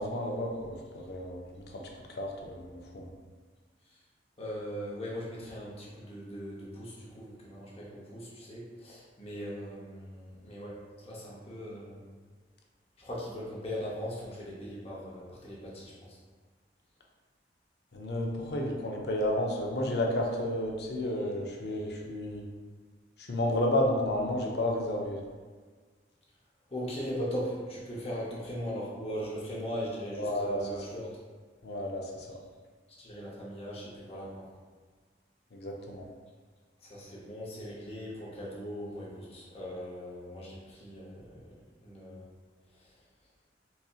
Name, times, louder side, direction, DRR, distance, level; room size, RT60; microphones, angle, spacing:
voice 1, 0.0-1.8 2.1-3.1 17.9-22.4 23.2-25.2 30.2-30.6 31.6-32.4 35.5-36.0, left 1 dB, 65° left, 0 dB, 0.5 m, -31 dB
voice 2, 4.4-12.0 13.0-16.2 21.8-21.9 26.7-31.1 33.0-34.5 36.8-41.5 41.8-42.3 42.7-43.0, equal, 35° left, -6 dB, 0.7 m, -39 dB
4.0 x 2.7 x 2.3 m, 1.5 s
head